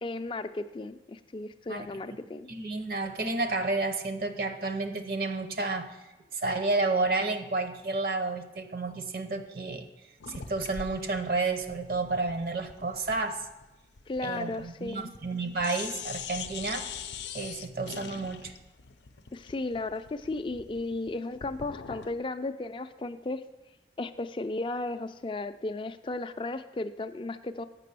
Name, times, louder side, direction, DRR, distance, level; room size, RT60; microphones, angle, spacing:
voice 1, 0.0-2.5 14.1-15.1 19.3-23.4 24.0-27.6, left 2 dB, 30° left, 10 dB, 0.3 m, -35 dB
voice 2, 2.5-6.0 6.3-9.9 10.3-13.4 14.2-16.9 17.3-18.5, right 3 dB, 55° right, 7 dB, 0.7 m, -31 dB
sound 1, 10.2-15.3 15.6-22.2, left 7 dB, 85° left, 0.5 m, -43 dB
7.5 x 6.1 x 6.7 m, 1.1 s
head